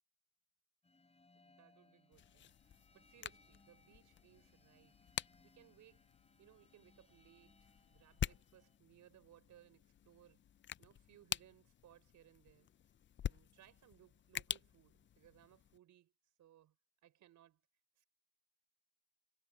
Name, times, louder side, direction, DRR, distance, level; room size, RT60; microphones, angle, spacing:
sound 1, 0.8-8.8, left 3 dB, 20° left, 5.6 m, -70 dB
voice 1, 1.3-5.2 5.4-6.1 6.4-10.5 10.8-12.8 13.2-16.8 17.0-17.7 18.0-18.1, right 12 dB, 75° right, 5.1 m, -66 dB
sound 2, 2.1-15.8, left 10 dB, 40° left, 0.5 m, -48 dB
cardioid pair, 90°, 30 cm